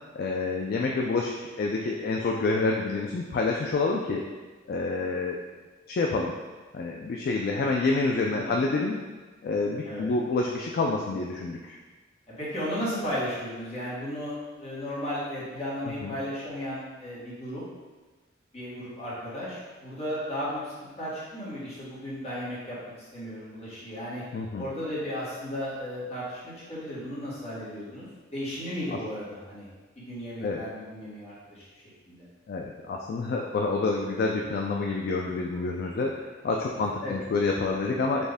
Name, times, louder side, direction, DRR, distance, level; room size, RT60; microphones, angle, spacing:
voice 1, 0.1-4.2 4.7-5.4 5.9-6.3 6.7-9.0 9.4-11.7 15.9-16.2 24.3-24.7 28.9-29.0 30.4-30.6 32.5-36.1 36.4-38.3, left 3 dB, 55° left, 0 dB, 0.3 m, -28 dB
voice 2, 12.3-17.6 18.5-22.8 23.1-24.2 24.6-29.7 30.0-31.7 32.1-32.3 36.8-37.1, equal, 35° left, -9 dB, 1.4 m, -35 dB
4.2 x 2.6 x 3.4 m, 1.3 s
head